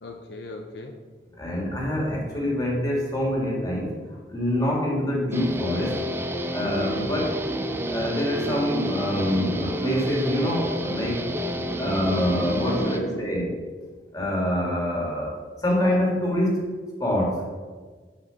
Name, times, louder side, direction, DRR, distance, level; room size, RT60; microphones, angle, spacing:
voice 1, 0.0-0.9 6.7-7.1 10.6-13.5, left 1 dB, 70° left, 3 dB, 0.8 m, -37 dB
voice 2, 1.4-3.9 4.3-6.0 6.5-7.4 7.8-11.2 11.8-13.5 14.1-16.7 17.0-17.4, left 1 dB, 20° left, -2 dB, 2.2 m, -25 dB
Guitar, 5.3-13.0, equal, 15° right, 0.6 m, -29 dB
8.5 x 5.3 x 6.4 m, 1.5 s
head